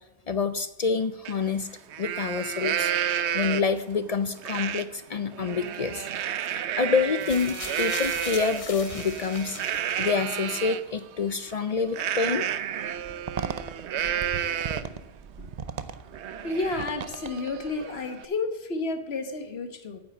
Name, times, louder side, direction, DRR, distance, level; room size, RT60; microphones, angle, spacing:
voice 1, 0.3-1.7 2.0-2.9 3.3-6.1 6.5-9.6 10.0-12.5, left 5 dB, 50° left, 12 dB, 0.5 m, -27 dB
Livestock farm animals working animals, 1.2-1.3 1.8-3.8 4.4-4.8 5.2-10.8 11.9-15.0 15.4-15.5 15.9-18.2, right 10 dB, 90° right, 0.9 m, -31 dB
sound 1, 7.2-10.5 11.3-11.4, left 3 dB, 30° left, 1.2 m, -39 dB
sound 2, 13.0-18.0, right 6 dB, 45° right, 0.7 m, -37 dB
voice 2, 16.4-20.0, left 3 dB, 70° left, 9 dB, 1.3 m, -31 dB
9.4 x 8.6 x 7.2 m, 1.0 s
omnidirectional pair, 1.1 m